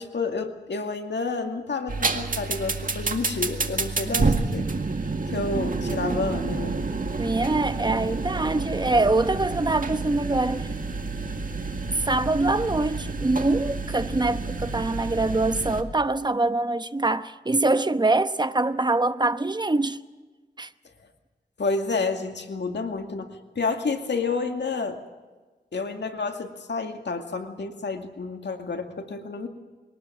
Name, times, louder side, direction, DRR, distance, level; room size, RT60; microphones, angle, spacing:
voice 1, 0.0-4.7 5.3-6.8 21.6-25.0 25.7-29.5, left 4 dB, 75° left, 2.3 m, -30 dB
sound 1, 1.9-15.8, right 3 dB, 50° right, 1.9 m, -29 dB
voice 2, 7.2-10.7 12.0-20.0 20.6-20.7, right 2 dB, 25° right, 0.9 m, -24 dB
22.5 x 18.5 x 7.5 m
wide cardioid pair, 70°, 18 cm